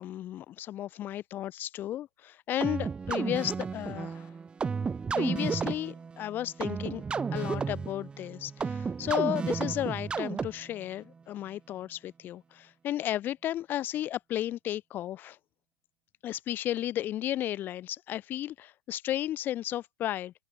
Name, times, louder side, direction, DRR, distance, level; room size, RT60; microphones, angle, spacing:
voice 1, 0.0-4.3 5.2-7.0 7.3-15.4 16.2-20.3, left 12 dB, 30° left, 2.6 m, -34 dB
sound 1, 2.6-10.8, right 5 dB, 15° right, 2.4 m, -33 dB
open air
hypercardioid pair, 110°, 6 cm